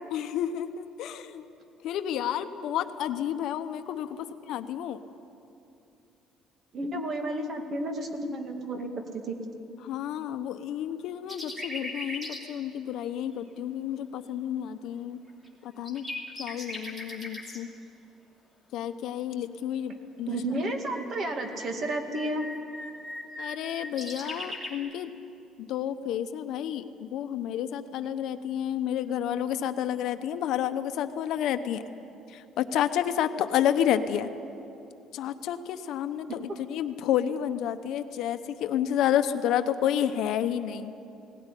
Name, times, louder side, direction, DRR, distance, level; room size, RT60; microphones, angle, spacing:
voice 1, 0.1-1.4 1.8-5.0 9.8-15.2 15.6-16.0 16.4-17.7 18.7-20.4 23.4-25.1 25.6-31.8 32.3-34.3 35.1-40.9, left 10 dB, 65° left, 10 dB, 0.9 m, -30 dB
voice 2, 6.7-8.9 9.2-9.4 20.3-22.5, right 1 dB, 40° right, 4 dB, 2.2 m, -31 dB
sound 1, 11.3-12.4 13.0-13.1 15.3-15.5 15.8-17.6 20.3-24.7, left 1 dB, 10° right, 3.0 m, -39 dB
18.5 x 17.0 x 9.9 m, 2.8 s
cardioid pair, 160°, 0 cm